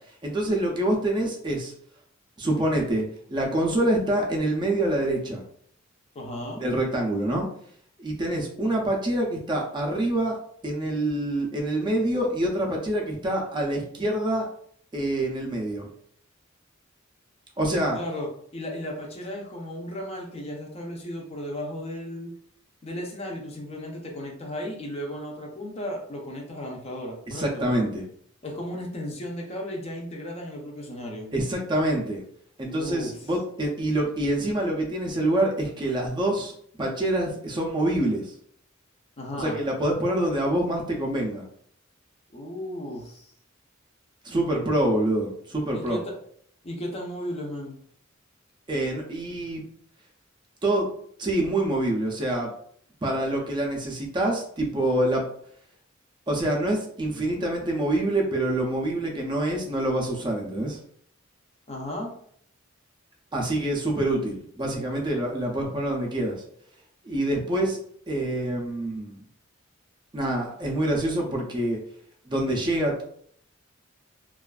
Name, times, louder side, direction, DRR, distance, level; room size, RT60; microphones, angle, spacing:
voice 1, 0.2-1.7 2.4-5.4 6.6-7.5 8.0-10.4 10.6-14.5 14.9-15.9 17.6-18.0 27.3-28.0 31.3-32.2 32.6-38.3 39.4-41.4 44.2-46.0 48.7-49.6 50.6-50.9 51.2-52.5 53.0-55.3 56.3-60.8 63.3-66.4 67.0-67.8 68.1-69.2 70.1-71.8 72.3-73.0, right 1 dB, 20° right, 0 dB, 0.4 m, -26 dB
voice 2, 6.1-6.6 17.9-22.3 22.8-27.6 28.4-31.3 32.7-33.2 39.2-39.6 42.3-43.3 45.7-46.1 46.6-47.8 61.7-62.1, left 1 dB, 30° left, 0 dB, 0.5 m, -35 dB
2.4 x 2.3 x 2.3 m, 0.63 s
head